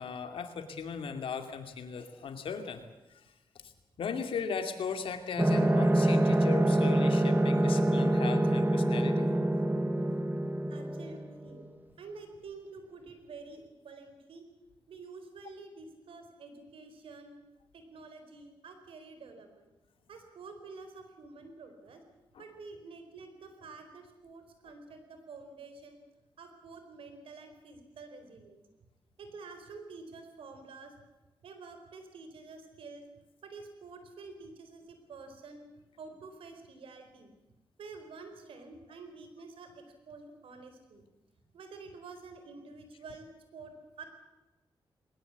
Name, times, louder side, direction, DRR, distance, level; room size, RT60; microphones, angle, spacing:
voice 1, 0.0-2.8 3.1-3.2 3.6-3.7 4.0-9.3 22.3-22.4, left 6 dB, 80° left, 7 dB, 2.7 m, -37 dB
sound 1, 5.4-11.7, right 1 dB, 20° right, 1.8 m, -26 dB
voice 2, 10.7-11.6 12.0-14.4 14.9-17.3 17.7-19.7 20.1-22.0 22.4-26.0 26.4-28.6 29.2-30.9 31.4-33.0 33.4-35.6 36.0-37.3 37.8-41.0 41.5-43.3 43.5-43.7 44.0-44.1, right 4 dB, 90° right, 7 dB, 4.3 m, -49 dB
21.5 x 19.5 x 8.3 m, 1.0 s
cardioid pair, 85°, 9 cm